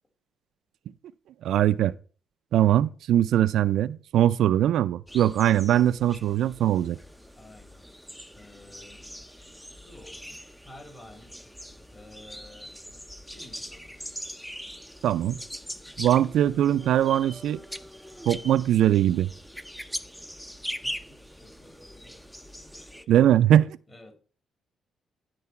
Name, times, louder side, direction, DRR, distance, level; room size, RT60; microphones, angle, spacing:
voice 1, 1.4-1.9 2.5-7.0 15.0-15.4 16.0-17.6 18.3-19.3 23.1-23.8, right 11 dB, 75° right, 0.4 m, -21 dB
sound 1, 5.1-23.0, equal, ahead, 0.6 m, -42 dB
voice 2, 7.4-7.8 8.3-11.4 11.9-12.8 13.2-14.0 20.8-23.1 23.9-24.1, left 1 dB, 30° left, 3.3 m, -52 dB
11.0 x 4.6 x 5.7 m
cardioid pair, 90°, 0 cm